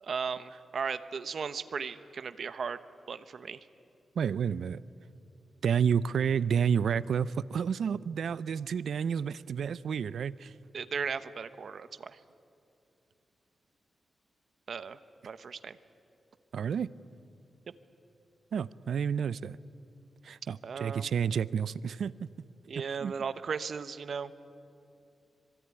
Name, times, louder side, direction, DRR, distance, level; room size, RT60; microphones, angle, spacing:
voice 1, 0.0-2.8 3.1-3.6 10.7-12.2 14.7-15.0 15.2-15.8 20.6-21.1 22.7-24.3, right 6 dB, 55° right, 13 dB, 1.0 m, -36 dB
voice 2, 4.2-4.8 5.6-10.5 16.5-16.9 18.5-19.6 20.2-22.3 23.0-23.1, right 7 dB, 75° right, 18 dB, 0.6 m, -30 dB
25.5 x 23.0 x 9.9 m, 2.7 s
wide cardioid pair, 135°, 0 cm